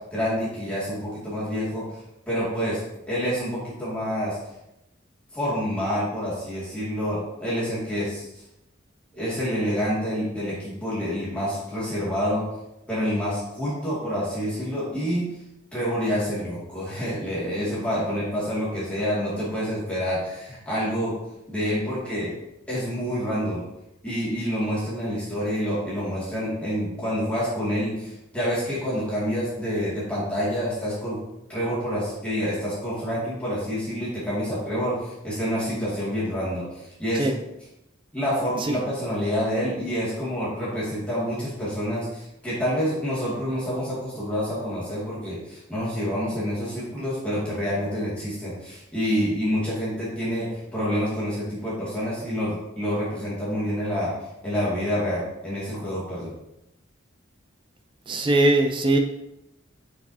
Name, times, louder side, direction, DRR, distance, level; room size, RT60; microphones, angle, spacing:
voice 1, 0.1-1.8 2.3-2.8 3.1-4.4 5.3-8.3 9.1-12.4 12.9-15.3 15.7-21.1 21.5-22.3 22.7-23.6 24.0-31.2 31.5-37.3 38.1-54.1 54.4-56.3, equal, 5° left, -9 dB, 2.2 m, -27 dB
voice 2, 58.1-59.0, right 2 dB, 25° right, 5 dB, 0.4 m, -20 dB
7.5 x 4.7 x 2.8 m, 0.88 s
head